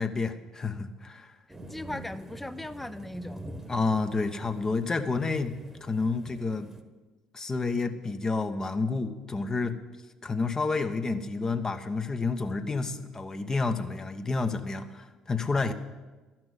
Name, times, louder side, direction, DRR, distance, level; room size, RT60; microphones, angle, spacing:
voice 1, 0.0-1.3 3.7-5.5 5.8-6.7 7.3-9.8 10.2-15.7, left 3 dB, 25° left, 7 dB, 1.0 m, -29 dB
sound 1, 1.5-6.8, right 1 dB, 15° right, 1.3 m, -46 dB
voice 2, 1.7-3.4 15.6-15.7, left 1 dB, 10° left, 13 dB, 0.7 m, -38 dB
12.5 x 6.0 x 9.6 m, 1.2 s
hypercardioid pair, 55°, 2 cm